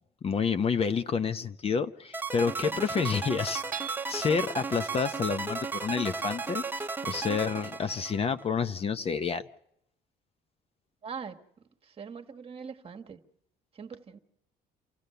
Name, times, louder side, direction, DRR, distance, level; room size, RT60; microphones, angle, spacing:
voice 1, 0.2-3.8 4.1-9.4, left 6 dB, 35° left, 0.8 m, -29 dB
sound 1, 2.1-8.4, right 4 dB, 10° right, 1.2 m, -35 dB
voice 2, 2.6-2.9 11.0-13.2 13.7-14.2, right 6 dB, 35° right, 1.6 m, -43 dB
Hammer / Chink clink, 3.7-4.5, right 9 dB, 50° right, 0.8 m, -40 dB
28.0 x 15.5 x 6.8 m
cardioid pair, 110°, 17 cm